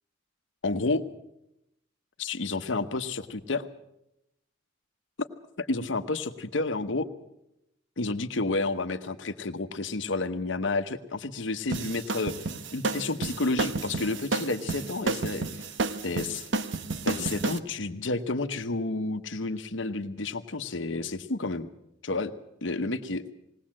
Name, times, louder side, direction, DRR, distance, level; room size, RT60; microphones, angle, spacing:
voice 1, 0.6-1.0 2.2-3.7 5.6-7.1 8.0-12.3 12.7-15.6 16.0-16.5 17.0-21.7 22.0-22.3 22.6-23.2, left 3 dB, 70° left, 9 dB, 1.1 m, -30 dB
sound 1, 11.7-17.6, right 3 dB, 70° right, 1.0 m, -31 dB
20.0 x 18.0 x 7.6 m, 0.85 s
head